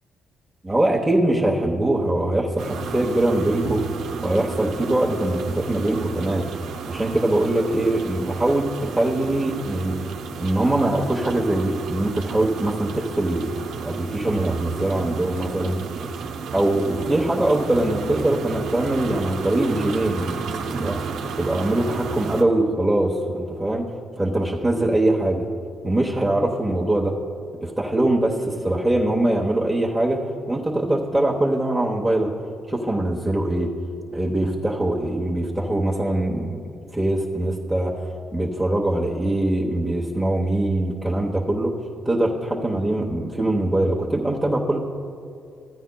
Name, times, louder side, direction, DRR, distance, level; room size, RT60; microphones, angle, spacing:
voice 1, 0.6-3.9 4.2-6.4 6.9-9.9 10.4-13.5 13.8-15.8 16.5-21.0 21.4-23.8 24.2-25.4 25.8-27.1 27.6-30.2 30.5-32.3 32.7-33.7 34.1-36.6 36.9-37.9 38.3-41.7 42.0-44.8, right 1 dB, 10° right, -3 dB, 0.9 m, -22 dB
sound 1, 2.6-22.4, right 5 dB, 80° right, 0.6 m, -32 dB
15.0 x 9.0 x 2.3 m, 2.5 s
cardioid pair, 90°, 0 cm